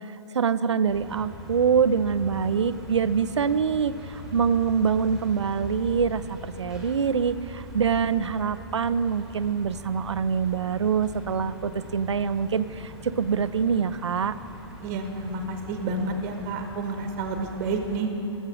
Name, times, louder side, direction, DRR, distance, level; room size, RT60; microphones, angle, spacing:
voice 1, 0.0-14.4, right 6 dB, 75° right, 14 dB, 0.5 m, -25 dB
sound 1, 0.8-18.0, equal, 5° right, 1.6 m, -42 dB
voice 2, 14.8-18.1, right 3 dB, 35° right, 5 dB, 1.2 m, -30 dB
13.0 x 7.3 x 6.2 m, 2.9 s
figure-of-eight pair, 125°, 15 cm